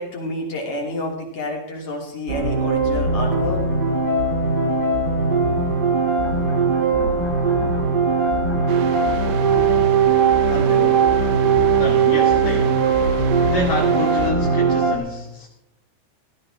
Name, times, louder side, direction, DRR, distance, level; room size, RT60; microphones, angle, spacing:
voice 1, 0.0-3.6 10.5-11.0, left 1 dB, 55° left, -1 dB, 4.1 m, -29 dB
sound 1, 2.3-15.0, right 5 dB, 40° right, 2.3 m, -19 dB
sound 2, 5.9-14.8, left 2 dB, 25° left, 2.0 m, -38 dB
sound 3, 8.7-14.3, right 9 dB, 75° right, 2.1 m, -35 dB
voice 2, 11.8-12.9 13.5-15.5, left 2 dB, 75° left, -2 dB, 2.9 m, -28 dB
17.5 x 13.0 x 3.8 m, 0.81 s
omnidirectional pair, 3.3 m